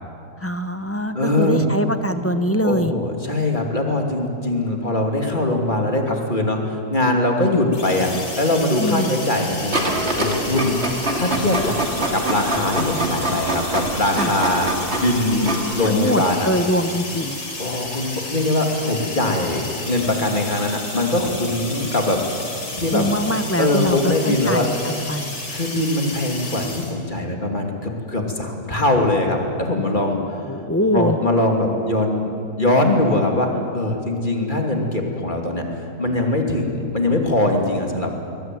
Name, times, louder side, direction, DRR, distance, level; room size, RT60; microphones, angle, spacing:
voice 1, 0.4-2.9 8.8-9.1 14.2-14.3 15.8-17.4 22.9-25.4 30.5-31.2, equal, 10° left, 9 dB, 0.7 m, -23 dB
voice 2, 1.1-1.6 2.6-11.8 12.1-16.5 17.6-22.2 22.8-23.0 23.6-24.7 25.5-30.4 30.9-32.3 32.6-35.7 36.0-38.1, left 1 dB, 30° left, 1 dB, 2.9 m, -22 dB
sound 1, 7.7-26.9, left 2 dB, 85° left, 4.6 m, -32 dB
Printer, 9.7-16.0, right 1 dB, 40° right, 2.9 m, -25 dB
22.0 x 20.5 x 9.3 m, 2.6 s
omnidirectional pair, 1.8 m